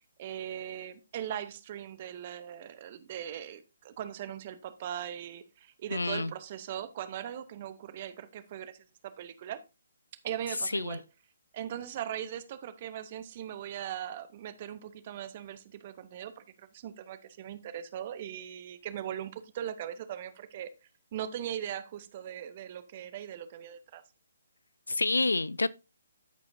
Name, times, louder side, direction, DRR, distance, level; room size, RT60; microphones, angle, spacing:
voice 1, 0.2-8.8 9.0-9.6 10.2-11.0 11.5-20.7 21.1-24.0, right 10 dB, 35° right, 0.9 m, -39 dB
voice 2, 5.9-6.3 10.7-11.0 24.9-25.7, left 3 dB, 70° left, 0.4 m, -28 dB
13.5 x 4.8 x 2.7 m
figure-of-eight pair, 135°, 0 cm